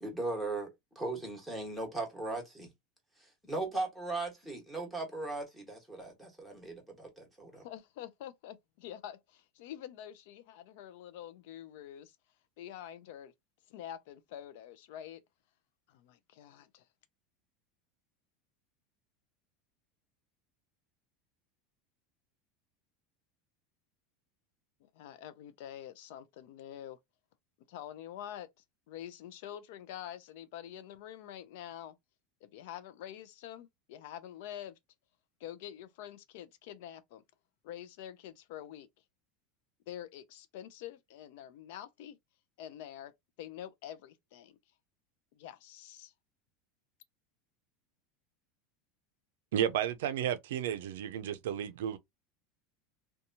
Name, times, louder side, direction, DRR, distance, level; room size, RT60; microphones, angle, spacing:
voice 1, 0.0-2.7 3.2-7.6, right 2 dB, ahead, 1.2 m, -38 dB
voice 2, 7.6-12.2 12.6-13.3 13.7-15.2 15.9-16.8 24.8-27.0 27.7-28.5 28.9-32.0 32.4-34.8 35.4-37.2 37.6-38.9 39.9-42.2 42.6-43.1 43.4-44.6 45.4-46.1, left 11 dB, 70° left, 0.4 m, -46 dB
voice 3, 49.5-52.0, right 10 dB, 85° right, 0.4 m, -32 dB
2.8 x 2.2 x 2.6 m
supercardioid pair, 135°, 0 cm